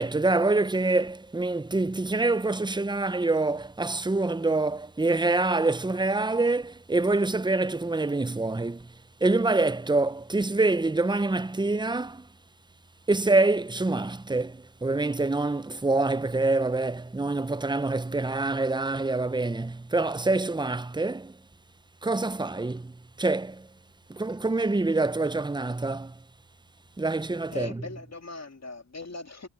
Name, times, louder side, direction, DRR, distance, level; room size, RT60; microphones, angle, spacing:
voice 1, 0.0-8.9 9.2-12.3 13.1-21.4 22.0-23.7 24.1-26.1 27.0-27.8, right 2 dB, 10° right, 0.8 m, -26 dB
voice 2, 27.5-29.5, left 3 dB, 35° left, 2.7 m, -40 dB
supercardioid pair, 40°, 46 cm